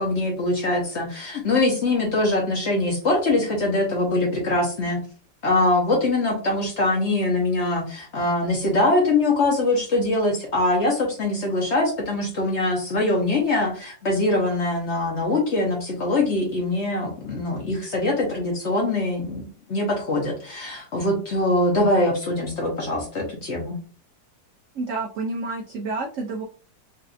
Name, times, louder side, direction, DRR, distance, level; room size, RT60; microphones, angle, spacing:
voice 1, 0.0-5.0 5.4-23.7, left 2 dB, 45° left, -1 dB, 1.0 m, -23 dB
voice 2, 24.7-26.4, right 3 dB, 75° right, 0 dB, 0.7 m, -29 dB
4.1 x 2.5 x 2.5 m, 0.39 s
omnidirectional pair, 2.0 m